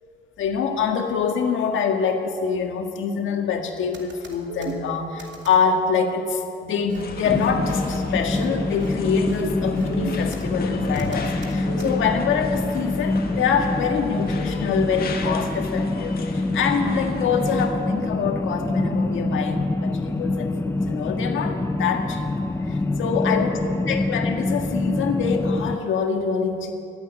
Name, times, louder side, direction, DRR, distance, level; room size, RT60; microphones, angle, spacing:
voice 1, 0.4-22.3 22.7-23.6 23.9-26.7, left 6 dB, 75° left, 4 dB, 1.7 m, -25 dB
sound 1, 3.9-4.7 5.2-5.6 6.9-7.0 7.4-7.5 7.8-8.0 8.3-8.4 8.8-8.9 9.3-9.4 9.8-10.4 11.0-11.9, right 4 dB, 65° right, 2.5 m, -35 dB
sound 2, 6.9-17.7, left 4 dB, 50° left, 1.7 m, -35 dB
sound 3, 7.3-25.8, left 2 dB, 15° left, 0.6 m, -26 dB
15.0 x 8.5 x 9.6 m, 2.6 s
cardioid pair, 90°, 20 cm